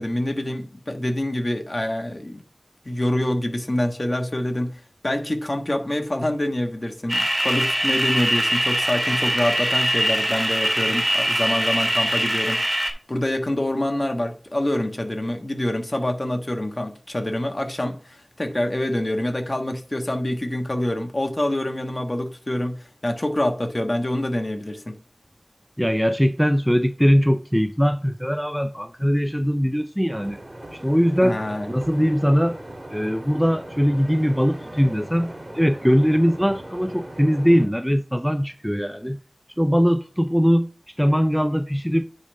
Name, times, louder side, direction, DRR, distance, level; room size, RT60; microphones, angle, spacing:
voice 1, 0.0-2.4 2.8-25.0 31.2-31.7, left 1 dB, 35° left, 1.3 m, -26 dB
sound 1, 7.1-12.9, equal, 25° right, 1.9 m, -22 dB
voice 2, 25.8-30.4 30.7-31.4 31.7-32.6 32.9-39.2 39.6-42.0, equal, ahead, 0.4 m, -21 dB
sound 2, 30.1-37.7, right 1 dB, 45° right, 1.8 m, -39 dB
9.7 x 3.4 x 5.4 m
wide cardioid pair, 50°, 0 cm